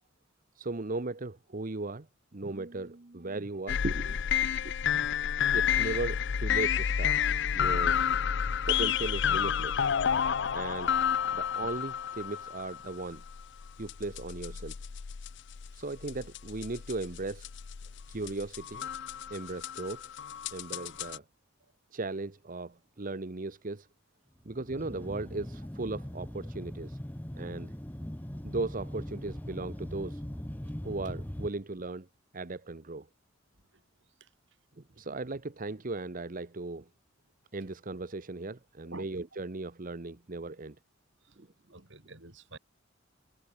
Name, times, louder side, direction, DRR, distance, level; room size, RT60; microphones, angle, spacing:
voice 1, 0.5-2.1 2.3-5.1 5.5-7.2 7.5-8.0 8.7-9.9 10.5-11.0 11.3-13.2 13.8-14.8 15.7-17.5 18.1-18.9 19.3-20.0 20.5-21.2 21.9-23.9 24.4-27.0 27.3-27.7 28.4-30.2 30.8-32.1 32.3-33.1 34.8-36.9 37.5-40.8 41.4-41.5, right 2 dB, 45° right, 1.0 m, -37 dB
sound 1, 3.7-21.2, left 8 dB, 60° left, 0.5 m, -30 dB
sound 2, 24.5-31.5, equal, 10° left, 0.8 m, -40 dB
voice 2, 41.7-42.6, right 2 dB, 65° right, 6.3 m, -48 dB
head